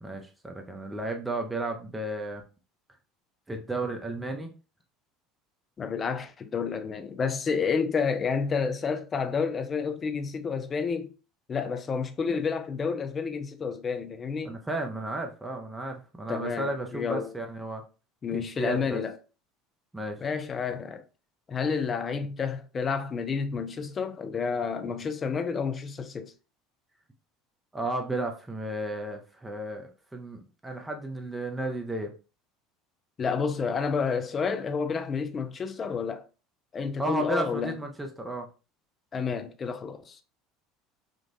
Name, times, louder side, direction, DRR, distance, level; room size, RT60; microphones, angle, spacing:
voice 1, 0.0-2.4 3.5-4.5 14.4-17.8 18.3-19.0 19.9-20.2 27.7-32.1 37.0-38.5, right 2 dB, 10° right, 0.7 m, -33 dB
voice 2, 5.8-11.1 11.5-14.6 16.3-17.3 18.2-19.2 20.2-21.0 21.5-26.3 33.2-36.3 36.7-37.8 39.1-40.2, left 5 dB, 30° left, 0.5 m, -30 dB
3.7 x 2.4 x 2.6 m
figure-of-eight pair, 70°, 0 cm